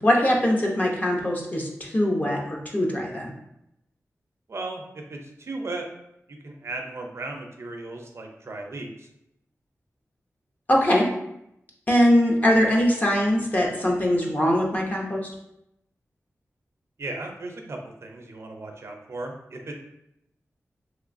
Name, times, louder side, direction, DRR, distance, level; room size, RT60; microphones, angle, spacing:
voice 1, 0.0-3.3 10.7-11.1 11.9-15.2, equal, 30° left, -1 dB, 0.6 m, -22 dB
voice 2, 4.5-5.9 6.3-9.1 17.0-19.7, right 2 dB, 55° right, 2 dB, 0.5 m, -36 dB
3.1 x 3.0 x 2.5 m, 0.82 s
wide cardioid pair, 110°, 5 cm